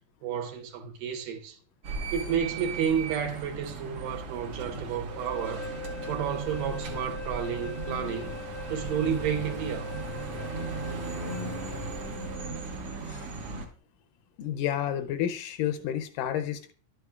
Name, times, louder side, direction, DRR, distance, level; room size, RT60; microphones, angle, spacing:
voice 1, 0.2-1.6 2.1-5.7 6.1-8.4 8.7-9.9, right 8 dB, 80° right, 2.6 m, -31 dB
sound 1, 1.8-13.7, right 3 dB, 60° right, 1.7 m, -37 dB
sound 2, 5.1-12.7, left 3 dB, 5° left, 0.4 m, -41 dB
voice 2, 14.4-16.7, left 10 dB, 80° left, 2.1 m, -30 dB
11.5 x 7.8 x 2.3 m
omnidirectional pair, 4.0 m